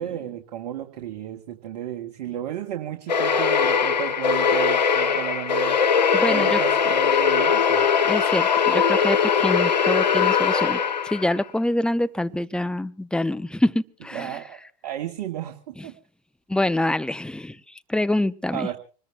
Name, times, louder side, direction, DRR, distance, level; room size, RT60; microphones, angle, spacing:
voice 1, 0.0-5.8 6.3-7.9 14.1-15.9 18.5-18.8, right 11 dB, 65° right, 4 dB, 1.6 m, -33 dB
sound 1, 3.1-11.4, left 6 dB, 85° left, 1.3 m, -21 dB
voice 2, 6.1-6.6 8.1-10.8 11.0-14.4 15.8-15.9 16.5-17.6 17.9-18.7, left 1 dB, 5° left, 13 dB, 0.7 m, -25 dB
26.0 x 20.0 x 2.2 m, 0.37 s
hypercardioid pair, 80°, 21 cm